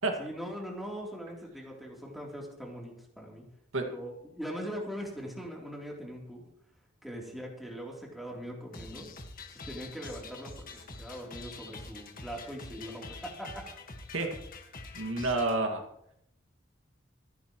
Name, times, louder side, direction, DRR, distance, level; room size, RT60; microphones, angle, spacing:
voice 1, 0.2-3.4 3.8-6.4 7.0-9.1 9.5-13.7 14.2-14.3, equal, ahead, -3 dB, 3.4 m, -41 dB
sound 1, 8.7-15.6, left 3 dB, 45° left, 1.7 m, -46 dB
voice 2, 14.9-15.8, right 2 dB, 90° right, 3 dB, 2.1 m, -29 dB
27.0 x 9.6 x 3.2 m, 0.75 s
head